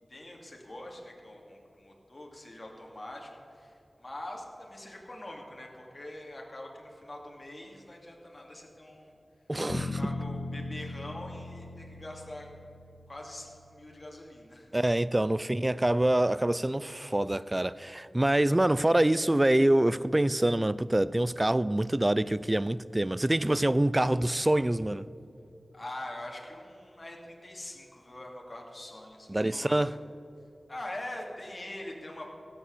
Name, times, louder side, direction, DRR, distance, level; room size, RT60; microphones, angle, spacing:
voice 1, 0.1-9.1 9.7-12.5 13.1-14.7 25.7-30.0 30.7-32.3, left 1 dB, 40° left, 2.6 m, -44 dB
voice 2, 9.5-10.0 14.7-25.1 29.3-29.9, right 1 dB, 25° right, 0.4 m, -25 dB
sound 1, 9.7-13.8, left 3 dB, 75° left, 0.9 m, -38 dB
16.5 x 7.8 x 6.7 m
wide cardioid pair, 60°, 0 cm